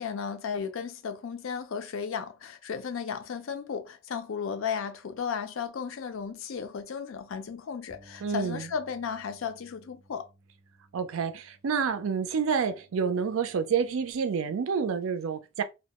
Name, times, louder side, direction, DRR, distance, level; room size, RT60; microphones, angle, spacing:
voice 1, 0.0-10.3, left 6 dB, 70° left, 0.4 m, -34 dB
Bass guitar, 7.9-14.1, right 1 dB, ahead, 0.5 m, -59 dB
voice 2, 8.2-8.7 10.9-15.6, right 6 dB, 75° right, 0.4 m, -28 dB
2.3 x 2.1 x 2.8 m
head